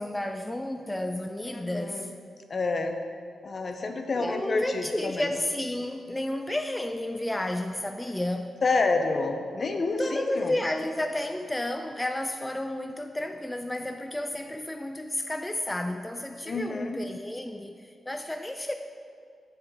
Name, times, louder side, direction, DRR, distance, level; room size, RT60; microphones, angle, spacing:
voice 1, 0.0-2.1 4.2-8.5 10.0-18.7, left 1 dB, 15° left, 6 dB, 0.3 m, -32 dB
voice 2, 1.5-2.1 2.5-3.0 3.4-5.3 8.6-10.6 16.5-17.0, left 3 dB, 50° left, 5 dB, 0.6 m, -28 dB
6.6 x 5.8 x 3.6 m, 2.2 s
cardioid pair, 55°, 0 cm